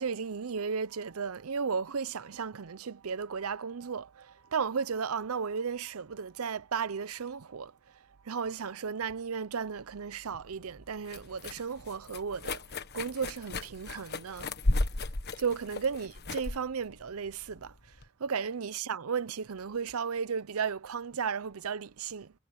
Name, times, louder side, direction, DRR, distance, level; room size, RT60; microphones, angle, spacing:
voice 1, 0.0-12.6 12.9-14.5 15.4-22.3, right 6 dB, 90° right, 0.7 m, -34 dB
sound 1, 10.3-18.1, left 2 dB, 50° left, 1.4 m, -35 dB
head